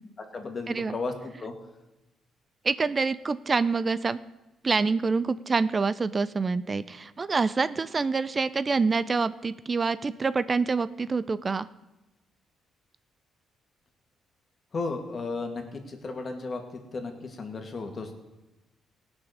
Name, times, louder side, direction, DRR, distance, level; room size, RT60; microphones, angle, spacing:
voice 1, 0.3-1.5 14.7-16.6 16.9-18.1, left 3 dB, 40° left, 4 dB, 2.1 m, -34 dB
voice 2, 2.6-4.2 4.6-11.7, right 4 dB, 30° right, 16 dB, 0.4 m, -26 dB
17.5 x 6.2 x 6.6 m, 1.0 s
cardioid pair, 90°, 0 cm